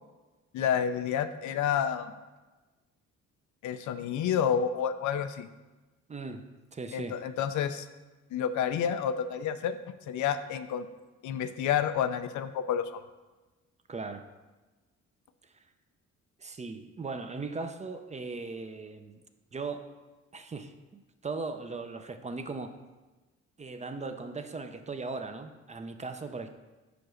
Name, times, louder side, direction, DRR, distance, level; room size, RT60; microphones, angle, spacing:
voice 1, 0.5-2.1 3.6-5.5 6.9-7.9 8.3-9.8 10.1-10.9 11.2-13.0, left 8 dB, 75° left, 11 dB, 0.5 m, -29 dB
voice 2, 6.1-6.5 6.7-7.2 13.9-14.2 15.4-15.6 16.4-19.2 19.5-19.9 20.3-22.7 23.6-26.5, right 3 dB, 25° right, 8 dB, 0.5 m, -38 dB
5.2 x 4.7 x 6.2 m, 1.2 s
cardioid pair, 90°, 30 cm